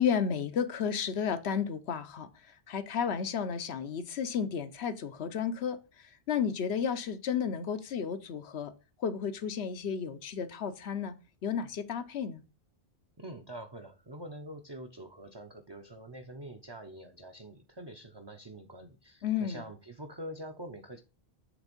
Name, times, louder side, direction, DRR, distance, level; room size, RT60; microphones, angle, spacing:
voice 1, 0.0-2.3 2.7-5.8 6.3-8.7 9.0-11.2 11.4-12.4 19.2-19.6, left 7 dB, 80° left, 1.0 m, -32 dB
voice 2, 13.2-21.0, right 1 dB, 30° right, 0.6 m, -45 dB
8.1 x 3.5 x 5.2 m
omnidirectional pair, 1.1 m